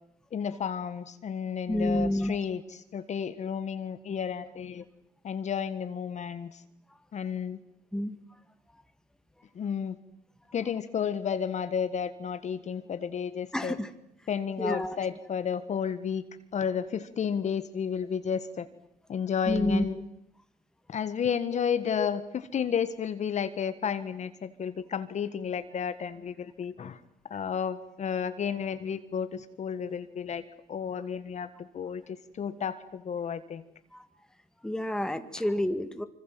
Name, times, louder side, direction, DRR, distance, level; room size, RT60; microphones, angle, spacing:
voice 1, 0.3-4.8 5.2-6.6 7.1-7.6 9.5-10.0 10.5-13.8 14.3-16.2 16.5-18.7 19.1-19.9 20.9-22.2 22.5-27.0 27.3-30.4 30.7-33.6, left 7 dB, 45° left, 11 dB, 1.6 m, -32 dB
voice 2, 1.7-2.4 7.9-8.2 13.5-13.9 14.6-15.0 19.5-19.9 21.5-21.6 22.0-22.1 33.9-34.1 34.6-36.1, left 1 dB, 5° left, 9 dB, 2.0 m, -29 dB
25.5 x 25.5 x 7.6 m, 0.79 s
cardioid pair, 110°, 17 cm